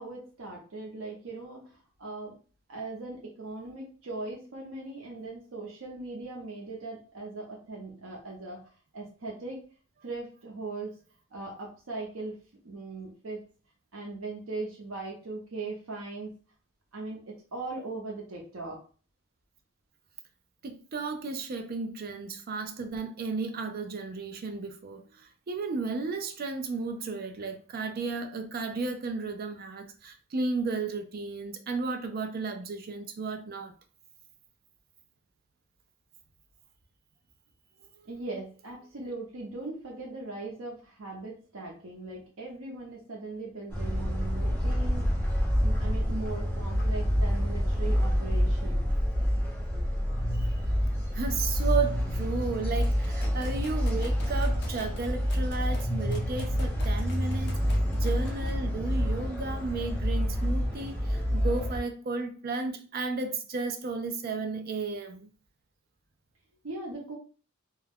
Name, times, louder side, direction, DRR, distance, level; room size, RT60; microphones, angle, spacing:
voice 1, 0.0-1.6 2.0-2.3 2.7-8.7 8.9-9.6 10.0-10.9 11.3-12.4 12.6-13.4 13.9-16.3 16.9-18.8 38.1-45.1 45.6-48.9 66.6-67.2, right 2 dB, 80° right, 0.7 m, -39 dB
voice 2, 20.6-33.7 50.4-50.5 51.1-57.6 57.9-65.3, right 4 dB, 45° right, 0.4 m, -33 dB
sound 1, 43.7-61.8, equal, 10° left, 0.9 m, -28 dB
sound 2, 52.8-58.5, left 2 dB, 55° left, 0.5 m, -49 dB
2.3 x 2.1 x 3.4 m
head